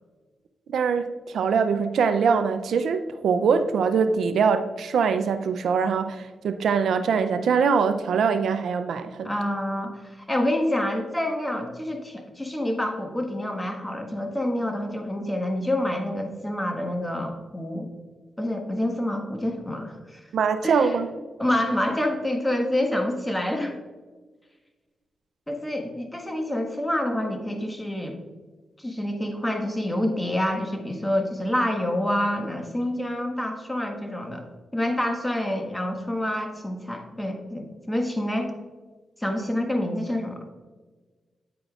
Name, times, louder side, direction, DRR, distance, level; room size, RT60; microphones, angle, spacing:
voice 1, 0.7-9.3 20.3-21.1, right 6 dB, 80° right, 0.4 m, -23 dB
voice 2, 9.2-17.9 18.4-20.2 20.6-20.9 21.4-23.8 25.5-28.2 28.8-34.4 34.7-38.5 39.2-40.5, left 1 dB, 10° left, 1.4 m, -27 dB
9.3 x 8.5 x 2.4 m
cardioid pair, 60°, 0 cm